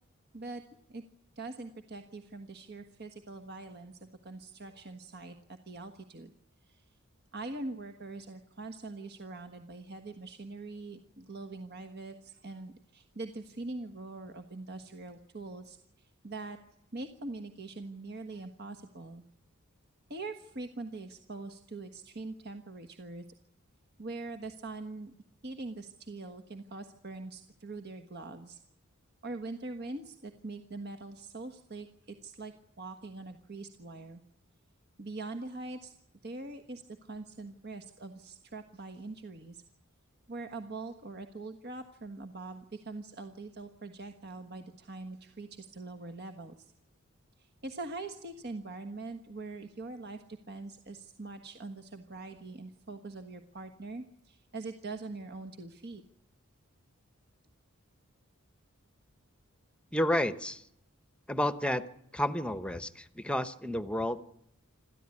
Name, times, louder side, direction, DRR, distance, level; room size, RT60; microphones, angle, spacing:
voice 1, 1.3-6.3 6.6-6.8 7.3-16.6 16.9-19.2 20.1-23.3 24.0-25.1 25.4-28.6 29.2-34.2 35.0-35.9 36.2-39.6 40.3-46.7 47.4-56.0, right 3 dB, 50° right, 7 dB, 1.4 m, -43 dB
voice 2, 59.9-60.7 61.3-61.9 62.1-64.2, left 1 dB, 5° left, 12 dB, 1.0 m, -31 dB
27.0 x 14.0 x 9.8 m, 0.79 s
head